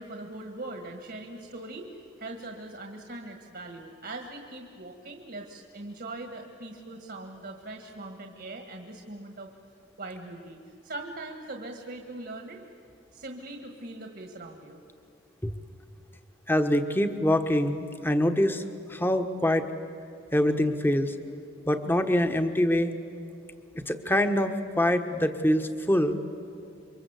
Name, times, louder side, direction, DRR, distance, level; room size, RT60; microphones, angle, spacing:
voice 1, 0.0-9.5 10.0-12.6 13.1-14.8, right 2 dB, 55° right, 3 dB, 1.7 m, -41 dB
voice 2, 16.5-18.6 18.9-19.7 20.3-21.1 21.6-22.9 23.9-26.2, left 1 dB, 10° left, 7 dB, 1.2 m, -24 dB
28.0 x 24.0 x 8.2 m, 2.5 s
head